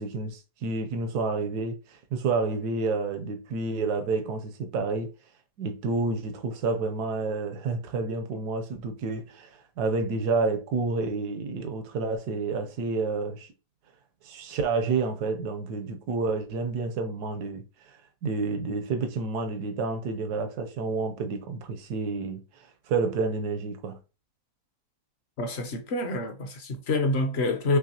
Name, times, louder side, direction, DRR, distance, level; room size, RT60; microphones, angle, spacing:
voice 1, 0.0-5.1 5.6-9.5 9.8-13.5 14.2-17.6 18.2-22.4 22.9-24.0, right 4 dB, 85° right, 1.3 m, -29 dB
voice 2, 25.4-27.8, left 2 dB, 55° left, 0.8 m, -27 dB
6.1 x 3.0 x 2.8 m
omnidirectional pair, 1.7 m